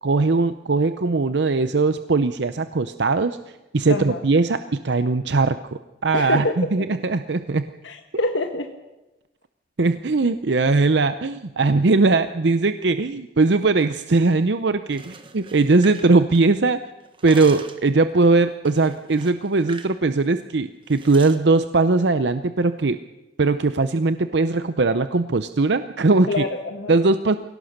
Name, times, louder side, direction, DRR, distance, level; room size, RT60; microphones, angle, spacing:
voice 1, 0.0-3.4 3.7-7.7 9.8-16.8 17.2-23.0 23.4-26.4 26.9-27.4, right 3 dB, 60° right, 11 dB, 0.6 m, -20 dB
voice 2, 3.9-4.2 6.1-6.5 7.8-8.7 26.3-26.9, left 2 dB, 80° left, 5 dB, 1.4 m, -25 dB
sound 1, 14.8-16.7 17.0-17.9 18.7-20.0 20.2-20.4 20.9-21.4, right 5 dB, 25° right, 1.3 m, -42 dB
22.5 x 17.5 x 6.6 m, 1.0 s
head